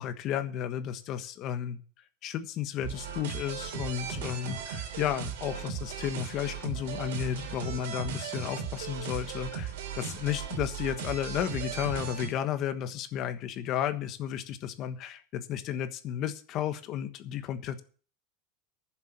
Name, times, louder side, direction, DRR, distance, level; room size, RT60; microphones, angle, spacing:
voice 1, 0.0-1.8 2.2-17.8, left 10 dB, 45° left, 10 dB, 1.3 m, -33 dB
sound 1, 2.8-12.3, right 7 dB, 85° right, 3.0 m, -37 dB
11.0 x 7.3 x 7.4 m, 0.41 s
supercardioid pair, 140°, 0 cm